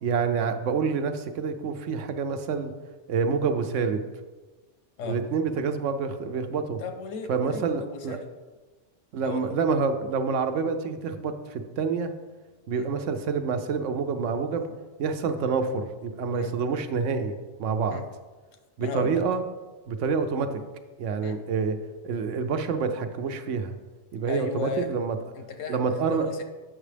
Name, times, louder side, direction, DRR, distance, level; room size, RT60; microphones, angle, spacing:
voice 1, 0.0-2.7 3.1-4.0 5.1-6.8 7.3-8.2 9.1-12.1 12.7-14.7 15.0-18.0 18.8-19.4 19.9-20.6 21.0-21.8 22.0-23.7 24.1-25.2 25.7-26.3, right 5 dB, 80° right, 8 dB, 1.0 m, -27 dB
voice 2, 6.8-8.3 9.2-9.6 12.7-12.9 14.7-14.8 16.3-16.5 17.9-18.0 18.8-19.2 21.2-21.4 24.3-24.9 25.3-26.4, left 5 dB, 90° left, 7 dB, 1.1 m, -36 dB
8.0 x 6.0 x 3.3 m, 1.3 s
omnidirectional pair, 1.3 m